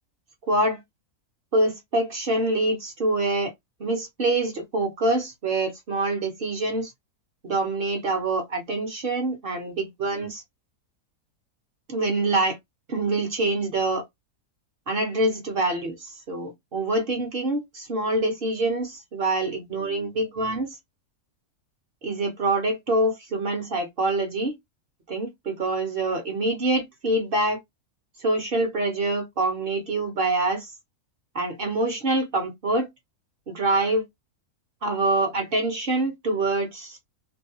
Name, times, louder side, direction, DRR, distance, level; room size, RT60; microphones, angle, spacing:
voice 1, 0.5-0.8 1.5-3.5 3.8-6.9 7.4-10.4 11.9-12.6 12.9-14.0 14.9-20.8 22.0-24.5 25.1-27.6 28.2-30.7 31.3-32.9 33.5-34.0 34.8-37.0, right 2 dB, 50° right, 0.7 m, -25 dB
2.6 x 2.1 x 2.7 m
omnidirectional pair, 1.6 m